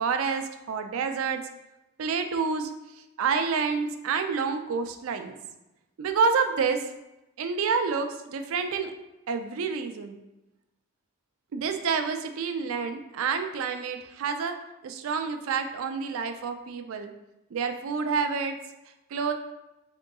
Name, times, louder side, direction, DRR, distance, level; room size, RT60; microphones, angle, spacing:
voice 1, 0.0-1.4 2.0-2.7 3.2-5.3 6.0-6.8 7.4-8.9 9.3-10.2 11.5-14.6 14.8-17.1 17.5-18.6 19.1-19.3, right 5 dB, 65° right, 7 dB, 0.3 m, -28 dB
3.7 x 3.6 x 2.3 m, 0.97 s
head